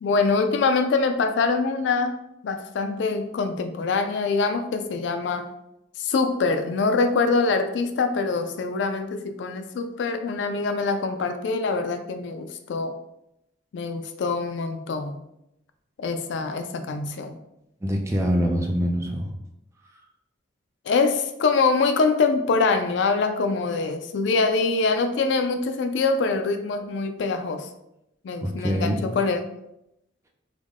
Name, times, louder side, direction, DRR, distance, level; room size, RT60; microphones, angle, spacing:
voice 1, 0.0-2.2 2.4-5.5 6.0-12.9 13.7-15.2 16.0-17.4 20.9-27.7 28.2-29.4, left 4 dB, 70° left, 7 dB, 0.3 m, -24 dB
voice 2, 17.8-19.3 28.4-29.0, equal, 15° right, 1 dB, 0.4 m, -24 dB
3.5 x 2.1 x 3.5 m, 0.84 s
head